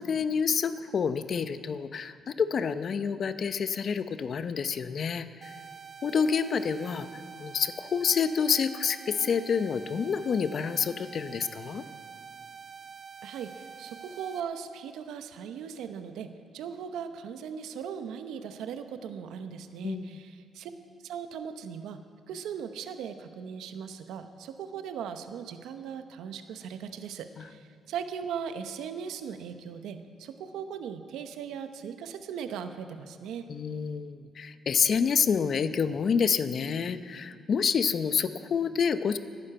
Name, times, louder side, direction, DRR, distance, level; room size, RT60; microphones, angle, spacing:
voice 1, 0.0-5.5 6.0-7.1 7.4-11.8 19.8-20.1 33.5-39.2, left 6 dB, 55° left, 12 dB, 0.6 m, -28 dB
sound 1, 5.4-14.4, right 6 dB, 40° right, 0.6 m, -46 dB
voice 2, 13.2-20.7 21.0-22.0 22.3-33.5, right 7 dB, 85° right, 9 dB, 0.8 m, -38 dB
11.5 x 10.5 x 8.7 m, 2.2 s
cardioid pair, 90°, 0 cm